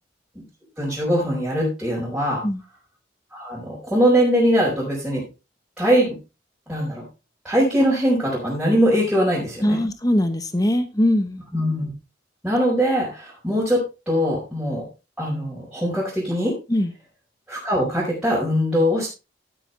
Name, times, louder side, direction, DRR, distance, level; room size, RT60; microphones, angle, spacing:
voice 1, 0.8-2.4 3.3-5.2 5.8-6.2 6.7-7.0 7.4-9.8 11.5-11.9 12.4-14.8 15.2-16.5 17.5-19.1, equal, 5° right, -8 dB, 4.6 m, -21 dB
voice 2, 9.6-11.4 16.7-16.9, left 1 dB, 20° left, 9 dB, 1.1 m, -21 dB
12.0 x 10.0 x 3.3 m, 0.29 s
head